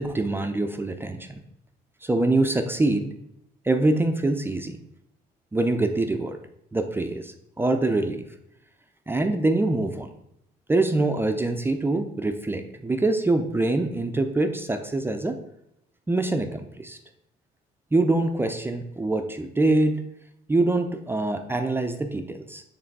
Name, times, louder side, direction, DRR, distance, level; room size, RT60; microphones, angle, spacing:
voice 1, 0.0-1.4 2.0-3.1 3.7-4.8 5.5-6.4 6.7-8.2 9.1-10.1 10.7-15.3 16.1-17.0 17.9-20.0 20.5-22.6, right 2 dB, 15° right, 6 dB, 0.4 m, -24 dB
6.2 x 3.3 x 4.6 m, 0.78 s
cardioid pair, 110°, 17 cm